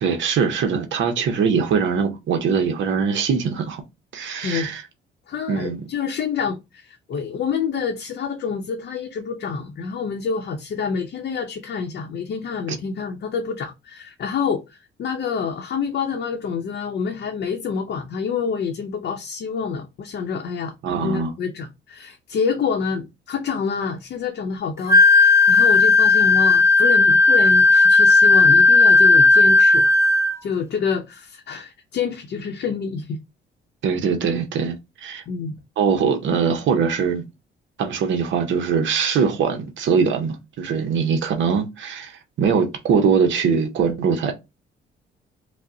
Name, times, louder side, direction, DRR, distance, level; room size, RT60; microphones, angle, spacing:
voice 1, 0.0-3.8 4.1-4.8 5.5-5.8 12.7-12.8 20.8-21.3 33.8-35.2 35.8-37.2 37.8-44.3, right 6 dB, 70° right, 0.7 m, -22 dB
voice 2, 4.4-4.7 5.3-29.8 30.4-33.2 35.3-35.5, left 6 dB, 60° left, 0.6 m, -27 dB
Wind instrument woodwind instrument, 24.9-30.4, left 3 dB, 15° right, 0.6 m, -14 dB
4.8 x 2.0 x 2.6 m
cardioid pair, 90°, 20 cm